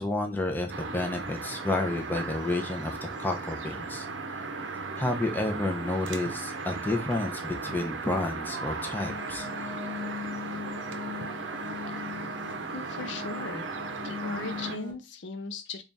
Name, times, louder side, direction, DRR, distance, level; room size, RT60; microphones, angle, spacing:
voice 1, 0.0-4.1 5.0-9.5, left 2 dB, 10° left, 3 dB, 0.5 m, -30 dB
sound 1, 0.7-14.8, right 4 dB, 85° right, 0.6 m, -36 dB
sound 2, 8.9-14.9, left 6 dB, 25° right, 0.9 m, -39 dB
voice 2, 12.7-13.7 14.0-15.8, left 3 dB, 75° left, 8 dB, 0.6 m, -38 dB
3.4 x 2.4 x 4.0 m, 0.26 s
head